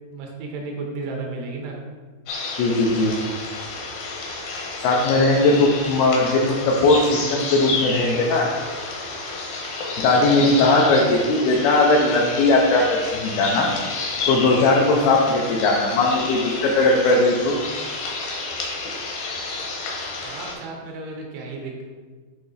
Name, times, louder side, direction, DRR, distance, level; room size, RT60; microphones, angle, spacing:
voice 1, 0.1-1.8 20.2-21.8, right 3 dB, 80° right, 0 dB, 3.4 m, -33 dB
sound 1, 2.3-20.5, left 3 dB, 70° left, 2.3 m, -30 dB
voice 2, 2.6-3.1 4.8-7.0 7.3-8.5 10.0-13.7 14.3-17.6, left 2 dB, 85° left, -1 dB, 2.2 m, -18 dB
9.4 x 3.2 x 3.9 m, 1.4 s
omnidirectional pair, 5.5 m